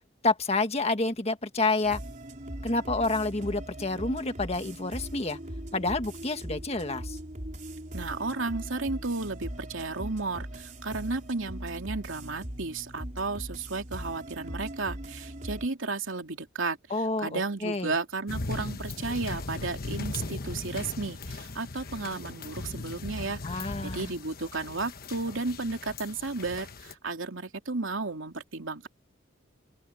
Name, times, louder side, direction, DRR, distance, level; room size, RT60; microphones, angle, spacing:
voice 1, 0.2-2.0 2.6-5.4 5.7-7.2 16.9-17.9 23.4-24.1, left 3 dB, 30° left, 1.6 m, -29 dB
sound 1, 1.8-15.7, right 1 dB, 40° right, 4.1 m, -40 dB
voice 2, 7.9-16.8 17.2-28.9, right 3 dB, 80° right, 2.8 m, -33 dB
sound 2, 18.3-26.9, left 2 dB, 50° left, 1.3 m, -38 dB
open air
head